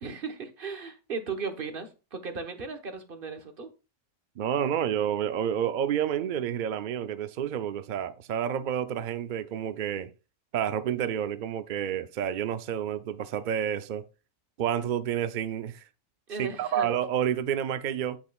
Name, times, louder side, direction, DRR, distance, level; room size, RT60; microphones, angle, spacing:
voice 1, 0.0-3.7 16.3-16.9, right 4 dB, 45° right, 1.3 m, -36 dB
voice 2, 4.4-10.1 10.5-14.1 14.6-15.9 16.4-18.2, right 9 dB, 75° right, 0.4 m, -29 dB
8.8 x 7.8 x 2.3 m
omnidirectional pair, 1.4 m